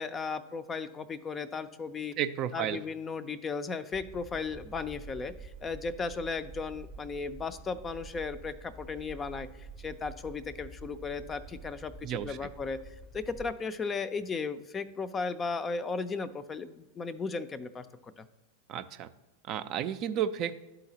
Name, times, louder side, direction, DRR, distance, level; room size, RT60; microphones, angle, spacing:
voice 1, 0.0-2.2 2.5-12.8 13.1-18.2, left 4 dB, 25° left, 12 dB, 0.4 m, -36 dB
voice 2, 2.2-2.8 12.0-12.5 18.7-19.1 19.5-20.6, right 9 dB, 45° right, 10 dB, 0.4 m, -32 dB
sound 1, 3.9-13.6, right 4 dB, 10° right, 0.7 m, -48 dB
11.5 x 3.9 x 2.8 m, 1.1 s
hypercardioid pair, 95°, 0 cm